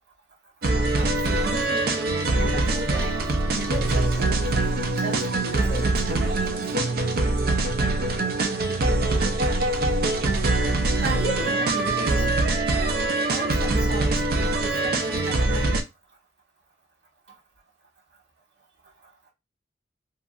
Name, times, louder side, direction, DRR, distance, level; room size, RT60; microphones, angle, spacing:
sound 1, 0.6-15.8, right 2 dB, 55° right, 0.4 m, -23 dB
voice 1, 1.0-2.0 2.3-6.7 11.0-12.3 13.2-15.8, right 3 dB, 85° right, 1.3 m, -35 dB
2.9 x 2.3 x 2.4 m
head